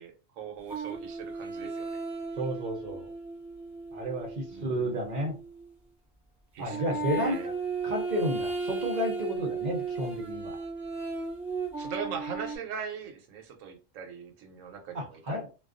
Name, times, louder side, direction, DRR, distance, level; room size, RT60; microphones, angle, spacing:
voice 1, 0.0-1.9 4.5-5.0 6.5-7.5 11.8-15.4, right 6 dB, 85° right, 1.0 m, -40 dB
sound 1, 0.7-5.7 6.7-12.6, right 4 dB, ahead, 0.6 m, -35 dB
voice 2, 2.4-3.1 3.9-5.4 6.6-7.5 7.8-10.6 14.9-15.5, equal, 45° right, 0.6 m, -32 dB
2.3 x 2.3 x 2.4 m
omnidirectional pair, 1.3 m